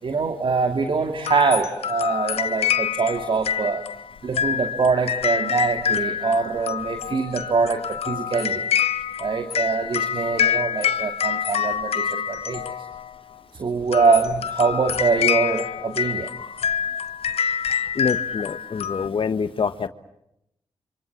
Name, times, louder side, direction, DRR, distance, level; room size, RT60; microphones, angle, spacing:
voice 1, 0.0-3.9 4.2-8.7 9.2-12.9 13.5-16.3, right 4 dB, 60° right, 6 dB, 2.5 m, -23 dB
sound 1, 1.2-13.2 13.8-19.1, left 8 dB, 85° left, 1.2 m, -26 dB
voice 2, 17.9-19.9, left 5 dB, 60° left, 11 dB, 1.4 m, -26 dB
27.5 x 27.0 x 7.4 m, 0.80 s
cardioid pair, 50°, 10 cm